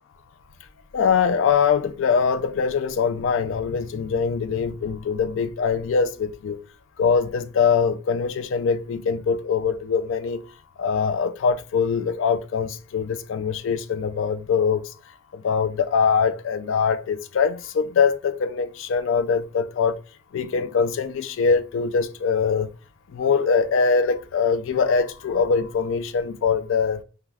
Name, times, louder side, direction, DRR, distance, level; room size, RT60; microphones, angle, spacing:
voice 1, 0.9-6.6 7.0-10.4 10.8-14.8 15.4-20.0 20.3-22.7 23.1-27.0, left 5 dB, 65° left, 0.3 m, -23 dB
3.2 x 2.3 x 2.3 m
head